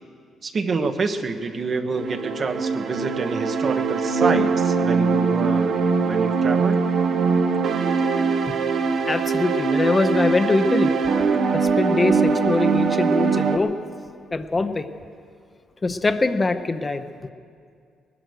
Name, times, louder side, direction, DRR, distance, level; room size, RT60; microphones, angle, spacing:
voice 1, 0.4-5.8 6.0-6.8, right 4 dB, 45° right, 6 dB, 1.1 m, -27 dB
sound 1, 2.0-13.6, right 5 dB, 65° right, 1.1 m, -22 dB
voice 2, 9.1-10.9 11.5-13.8 14.3-14.9 15.8-17.0, left 3 dB, 25° left, 8 dB, 0.8 m, -23 dB
20.0 x 11.0 x 6.5 m, 2.3 s
cardioid pair, 90°, 0 cm